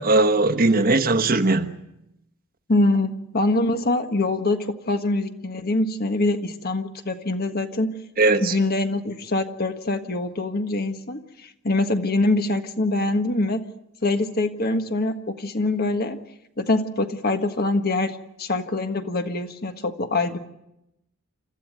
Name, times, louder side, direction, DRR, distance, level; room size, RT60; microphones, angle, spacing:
voice 1, 0.0-1.7 8.2-8.6, right 2 dB, 40° right, 1.2 m, -19 dB
voice 2, 2.7-7.9 8.3-13.6 14.0-16.2 16.6-20.4, left 2 dB, 45° left, 1.5 m, -24 dB
28.5 x 14.0 x 9.3 m
head